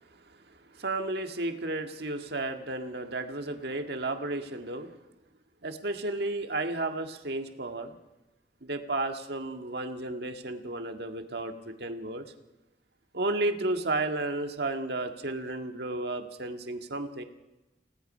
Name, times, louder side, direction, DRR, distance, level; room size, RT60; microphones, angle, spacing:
voice 1, 0.7-5.0 5.6-7.9 8.6-12.3 13.1-17.2, right 2 dB, 60° right, 6 dB, 1.8 m, -33 dB
29.5 x 18.0 x 5.5 m, 1.1 s
head